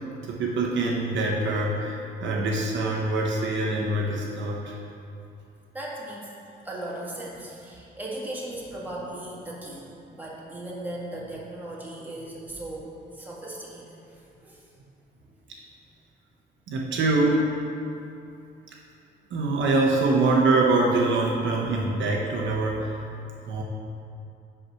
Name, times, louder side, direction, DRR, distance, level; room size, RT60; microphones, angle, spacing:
voice 1, 0.3-4.8 16.7-17.5 19.3-23.0 23.5-23.6, right 2 dB, 70° right, -2 dB, 0.9 m, -24 dB
voice 2, 5.7-6.3 6.6-14.7, right 1 dB, 10° right, -6 dB, 1.6 m, -37 dB
5.4 x 4.8 x 5.7 m, 2.7 s
cardioid pair, 90°, 20 cm